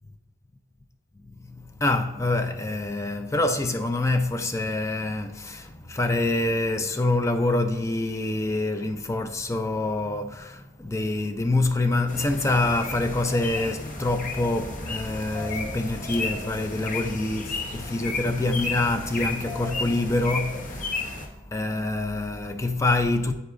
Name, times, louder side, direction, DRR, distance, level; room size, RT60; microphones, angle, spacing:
voice 1, 1.4-23.3, left 2 dB, 15° left, 0.4 m, -26 dB
sound 1, 12.1-21.3, left 3 dB, 40° left, 0.9 m, -33 dB
9.5 x 8.0 x 2.6 m
head